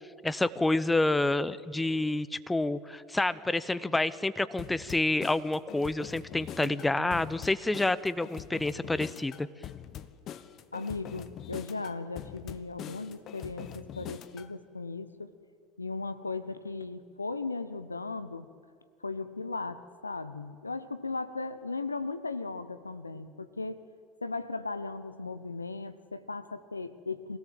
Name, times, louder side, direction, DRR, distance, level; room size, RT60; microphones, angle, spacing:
voice 1, 0.2-9.5, left 2 dB, 10° left, 16 dB, 0.8 m, -28 dB
sound 1, 4.6-14.5, left 10 dB, 45° left, 0.9 m, -44 dB
voice 2, 6.6-7.1 10.7-15.3 15.8-18.5 19.0-23.8 24.2-27.4, left 3 dB, 90° left, 13 dB, 0.8 m, -37 dB
23.5 x 17.5 x 7.7 m, 2.2 s
figure-of-eight pair, 75°, 0 cm